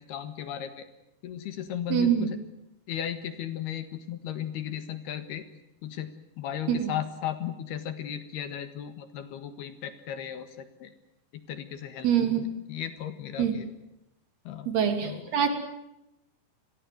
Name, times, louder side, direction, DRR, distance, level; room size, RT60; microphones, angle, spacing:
voice 1, 0.1-0.9 1.2-2.4 2.9-5.4 5.8-6.1 6.4-10.9 11.5-13.7 14.5-14.7 15.0-15.3, left 10 dB, 65° left, 11 dB, 3.3 m, -36 dB
voice 2, 1.9-2.3 6.7-6.9 12.0-12.5 13.4-13.6 14.7-15.5, right 9 dB, 60° right, 7 dB, 5.0 m, -24 dB
29.0 x 22.5 x 7.8 m, 0.89 s
omnidirectional pair, 5.3 m